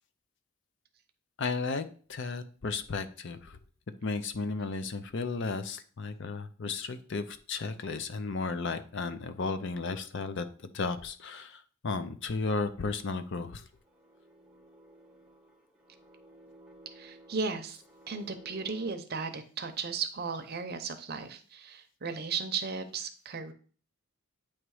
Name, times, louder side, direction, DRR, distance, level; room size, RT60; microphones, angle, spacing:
voice 1, 1.4-3.6 4.0-13.7, left 4 dB, 55° left, 11 dB, 0.6 m, -34 dB
sound 1, 13.0-18.9, right 1 dB, ahead, 0.7 m, -56 dB
voice 2, 16.9-23.5, right 5 dB, 45° right, 8 dB, 0.7 m, -36 dB
8.8 x 3.0 x 4.7 m, 0.43 s
head